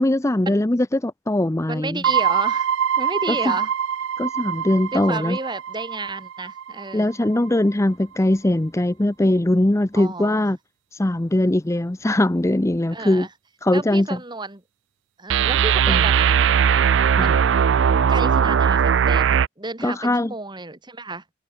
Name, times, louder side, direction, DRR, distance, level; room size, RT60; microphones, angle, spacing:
voice 1, 0.0-2.0 3.5-3.6 4.2-5.4 6.9-10.6 10.9-13.3 13.6-14.1 15.9-16.0 17.2-17.3 19.8-20.3, left 1 dB, 15° left, 0.6 m, -21 dB
voice 2, 1.7-2.7 3.0-3.7 4.9-7.1 9.9-10.5 12.9-13.3 13.7-14.6 15.2-16.6 17.2-17.5 18.1-21.2, right 3 dB, 25° right, 2.7 m, -31 dB
sound 1, 2.0-6.9 7.3-7.4 15.3-19.5, right 7 dB, 65° right, 0.4 m, -20 dB
head